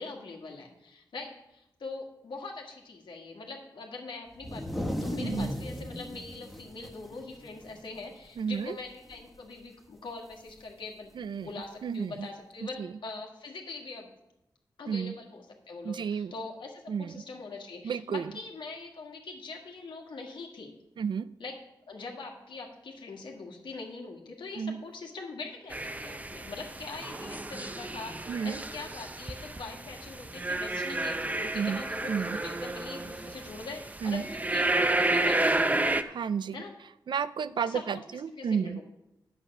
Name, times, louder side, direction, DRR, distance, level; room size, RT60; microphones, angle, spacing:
voice 1, 0.0-14.1 14.8-20.7 21.4-21.6 21.9-35.8 36.5-36.7 37.7-38.8, left 3 dB, 90° left, 1 dB, 1.9 m, -42 dB
sound 1, 4.3-8.0 8.4-8.5 8.9-9.4 10.5-10.6 11.6-11.7, equal, ahead, 1.3 m, -36 dB
voice 2, 5.2-5.5 8.4-8.8 11.2-11.5 11.8-12.3 12.8-12.9 14.9-15.1 15.8-16.3 16.9-17.2 17.8-18.3 21.0-21.3 24.6-24.8 28.3-28.6 31.5-31.8 32.1-32.4 34.0-34.2 36.1-36.6 37.1-38.8, right 6 dB, 70° right, 15 dB, 0.4 m, -32 dB
sound 2, 25.7-36.0, right 2 dB, 20° right, 0.6 m, -31 dB
9.9 x 8.0 x 6.0 m, 0.87 s
wide cardioid pair, 105°, 8 cm